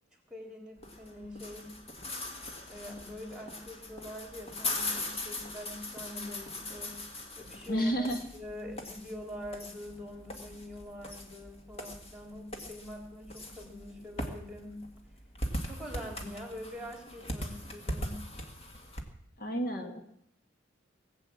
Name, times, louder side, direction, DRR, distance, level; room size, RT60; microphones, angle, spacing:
voice 1, 0.3-1.8 2.7-7.0 7.4-8.1 8.3-14.8 15.6-18.2, left 1 dB, 5° right, 2 dB, 3.6 m, -44 dB
sound 1, 0.8-19.0, left 1 dB, 30° left, 2.0 m, -40 dB
voice 2, 7.7-8.2 19.4-20.0, equal, 50° left, 3 dB, 1.8 m, -30 dB
19.5 x 8.0 x 8.6 m, 0.70 s
head